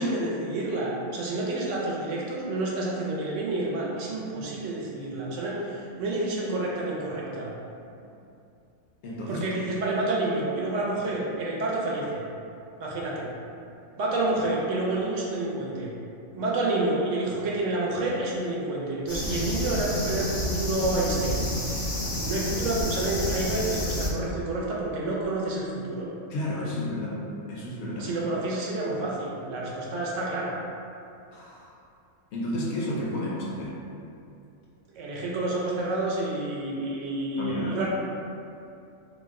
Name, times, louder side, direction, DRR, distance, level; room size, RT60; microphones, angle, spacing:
voice 1, 0.0-7.5 9.3-12.2 12.8-13.3 14.0-15.9 16.3-21.5 22.2-26.1 28.0-30.6 34.9-37.9, right 2 dB, 70° right, -4 dB, 0.8 m, -29 dB
voice 2, 9.0-9.4 13.7-13.8 26.3-27.2 27.5-28.1 31.3-31.7 32.3-33.7 37.4-37.9, left 1 dB, 65° left, -5 dB, 0.7 m, -31 dB
sound 1, 19.1-24.1, left 1 dB, 35° left, 0.4 m, -29 dB
2.8 x 2.1 x 3.5 m, 2.6 s
omnidirectional pair, 1.5 m